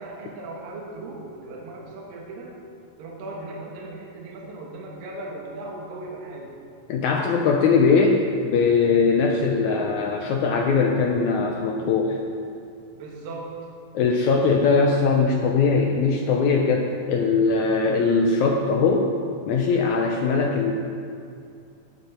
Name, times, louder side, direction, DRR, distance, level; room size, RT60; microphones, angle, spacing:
voice 1, 0.0-2.5 3.0-6.5 7.2-7.7 12.9-13.6, right 2 dB, 70° right, -2 dB, 3.0 m, -37 dB
voice 2, 6.9-12.2 13.9-19.1 19.5-20.7, left 4 dB, 80° left, 1 dB, 1.7 m, -21 dB
16.0 x 8.5 x 4.4 m, 2.4 s
omnidirectional pair, 4.3 m